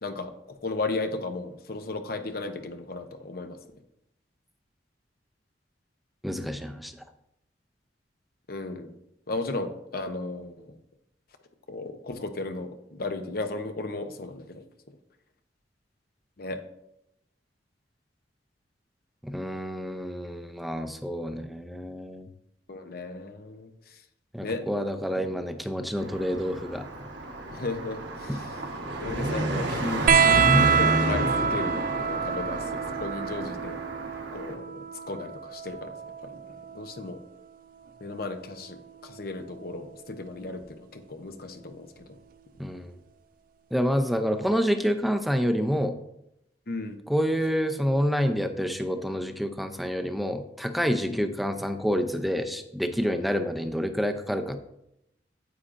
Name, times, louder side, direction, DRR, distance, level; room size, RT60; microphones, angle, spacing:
voice 1, 0.0-3.6 8.5-8.9 9.3-10.7 11.7-14.6 16.4-16.6 22.7-23.7 24.4-24.6 27.5-28.3 29.0-33.8 34.3-35.9 36.2-36.3 36.7-37.2 38.0-41.9 46.7-47.0 51.1-51.2, left 3 dB, 55° left, 7 dB, 0.8 m, -35 dB
voice 2, 6.2-6.9 19.2-22.3 24.3-26.9 28.3-28.4 42.6-43.0 43.7-46.0 47.1-54.7, equal, ahead, 6 dB, 0.5 m, -28 dB
Car passing by, 26.0-34.5, right 1 dB, 75° right, 1.4 m, -30 dB
sound 1, 30.1-37.1 38.5-39.3 40.6-40.7, right 6 dB, 50° right, 0.4 m, -26 dB
9.6 x 8.5 x 2.6 m, 0.81 s
head